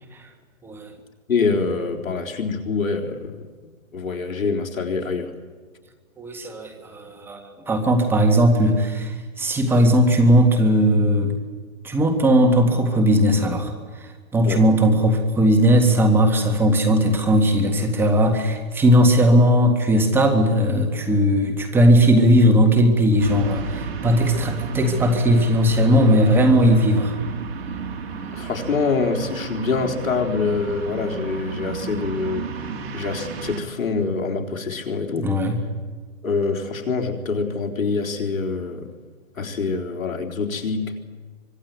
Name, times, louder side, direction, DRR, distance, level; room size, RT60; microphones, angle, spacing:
voice 1, 1.3-5.3 14.4-14.6 28.3-32.6 32.9-35.3 36.2-38.9 39.4-41.0, left 4 dB, 75° left, 3 dB, 4.2 m, -25 dB
voice 2, 6.2-11.4 11.8-13.7 14.0-27.1 35.2-35.6, equal, 5° right, 5 dB, 1.7 m, -18 dB
sound 1, 23.2-33.6, right 5 dB, 50° right, 3.3 m, -33 dB
25.0 x 21.5 x 9.4 m, 1.5 s
hypercardioid pair, 160°, 41 cm